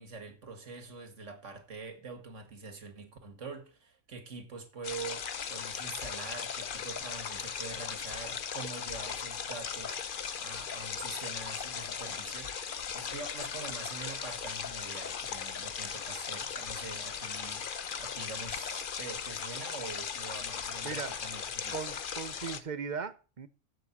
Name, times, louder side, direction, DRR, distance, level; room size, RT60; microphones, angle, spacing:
voice 1, 0.0-5.2 5.5-21.8, right 3 dB, 75° right, 2.2 m, -45 dB
sound 1, 4.8-22.6, left 7 dB, 50° left, 0.9 m, -38 dB
voice 2, 20.8-21.3 21.7-23.5, right 6 dB, 40° right, 0.9 m, -38 dB
7.8 x 7.6 x 8.4 m
omnidirectional pair, 1.3 m